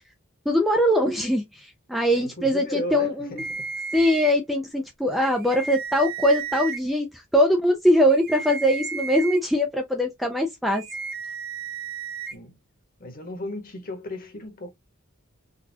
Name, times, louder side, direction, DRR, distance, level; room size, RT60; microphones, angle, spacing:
voice 1, 0.5-3.5 3.9-10.8, equal, ahead, 0.5 m, -22 dB
voice 2, 2.1-3.7 12.3-12.5 13.0-14.7, left 1 dB, 40° left, 1.4 m, -35 dB
sound 1, 3.4-4.3 5.1-6.8 8.1-9.4 10.7-12.3, right 5 dB, 45° right, 0.7 m, -33 dB
3.9 x 2.4 x 2.8 m
head